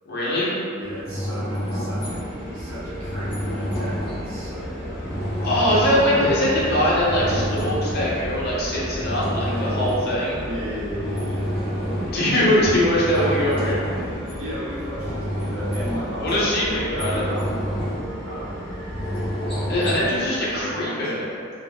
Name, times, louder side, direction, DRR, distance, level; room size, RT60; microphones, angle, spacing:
voice 1, 0.1-0.6 5.4-10.4 12.1-13.8 16.2-17.3 19.7-21.2, left 1 dB, 50° left, -7 dB, 0.8 m, -22 dB
voice 2, 0.7-5.0 8.7-8.9 9.4-9.8 10.4-11.6 14.3-17.6 18.2-18.7 19.4-21.2, equal, 75° right, -9 dB, 0.8 m, -35 dB
sound 1, 0.8-20.7, equal, 25° left, 0.9 m, -30 dB
sound 2, 2.0-19.8, equal, 25° right, 1.1 m, -34 dB
2.7 x 2.1 x 3.5 m, 2.3 s
head